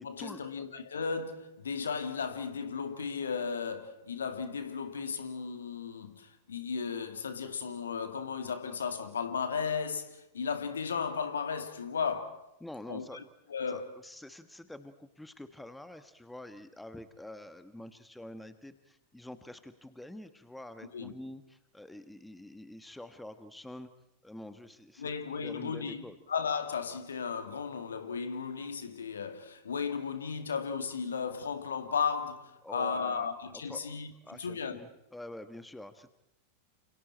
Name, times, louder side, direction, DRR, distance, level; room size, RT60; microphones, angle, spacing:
voice 1, 0.0-12.5 12.9-13.2 13.5-13.9 20.9-21.1 25.0-26.0 26.3-34.1 34.4-34.8, left 6 dB, 70° left, 2.0 m, -35 dB
voice 2, 12.6-13.2 13.7-23.9 24.2-25.1 25.4-26.2 32.6-33.9 34.2-36.1, left 1 dB, 5° left, 1.5 m, -47 dB
29.5 x 28.0 x 4.4 m
figure-of-eight pair, 90°, 0 cm